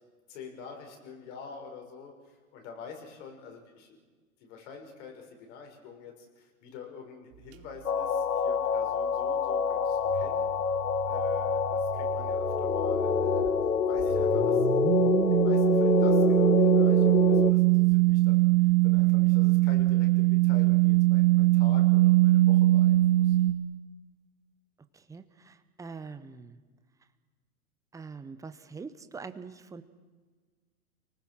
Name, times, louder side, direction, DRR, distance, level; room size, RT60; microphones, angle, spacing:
voice 1, 0.3-4.0 4.4-10.5 11.0-13.5 13.8-14.7 15.3-23.4, left 6 dB, 55° left, 2 dB, 6.2 m, -47 dB
sound 1, 7.9-17.5, left 6 dB, 85° left, 1.5 m, -26 dB
sound 2, 10.1-13.5 14.0-23.5, right 18 dB, 50° right, 1.6 m, -23 dB
voice 2, 24.9-26.6 27.9-29.8, right 4 dB, 5° right, 10 dB, 0.9 m, -44 dB
29.5 x 19.5 x 6.3 m, 1.4 s
hypercardioid pair, 120°, 44 cm